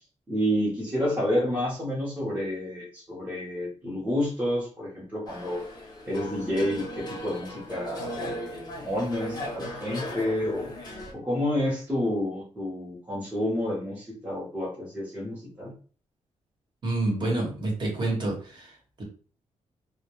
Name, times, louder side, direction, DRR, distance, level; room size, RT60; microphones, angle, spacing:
voice 1, 0.3-5.6 6.1-10.7 11.1-15.7, left 1 dB, 15° right, -7 dB, 0.7 m, -29 dB
sound 1, 5.3-11.1, left 1 dB, 35° left, 0.7 m, -37 dB
voice 2, 16.8-19.0, right 2 dB, 40° right, -1 dB, 1.0 m, -28 dB
2.2 x 2.1 x 2.9 m, 0.40 s
wide cardioid pair, 165°, 12 cm